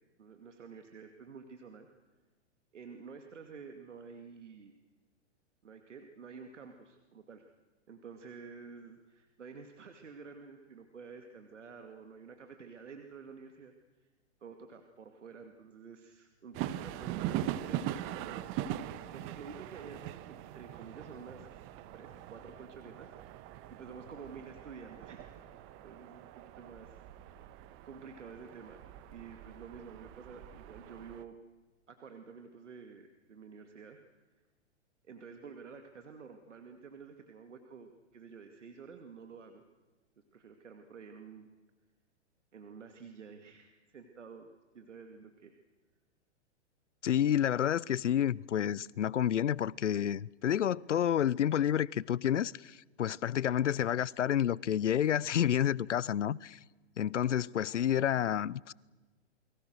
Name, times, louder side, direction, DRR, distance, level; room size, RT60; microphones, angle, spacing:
voice 1, 0.2-1.9 2.7-4.7 5.6-7.5 7.9-14.1 14.4-18.7 19.1-21.5 21.9-25.4 25.8-27.6 27.8-28.8 29.1-31.4 31.9-34.0 35.1-39.6 40.3-41.5 42.5-44.5 44.7-45.6, right 5 dB, 80° right, 2.5 m, -50 dB
sound 1, 16.5-31.2, right 12 dB, 35° right, 1.4 m, -42 dB
voice 2, 47.0-56.6 57.0-58.7, left 10 dB, 80° left, 0.7 m, -29 dB
29.5 x 22.5 x 6.5 m
hypercardioid pair, 115°, 36 cm